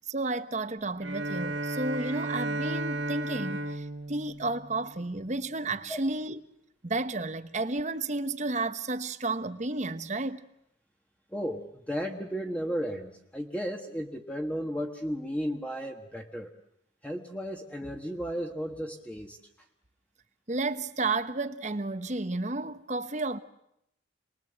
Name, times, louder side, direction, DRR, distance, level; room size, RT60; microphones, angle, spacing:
voice 1, 0.1-6.4 6.8-10.4 20.5-23.4, right 2 dB, 40° right, 1.1 m, -32 dB
Bowed string instrument, 1.0-5.4, right 2 dB, 70° right, 2.1 m, -34 dB
voice 2, 11.3-16.5 17.0-19.4, equal, 5° left, 1.5 m, -34 dB
27.5 x 21.5 x 7.9 m
head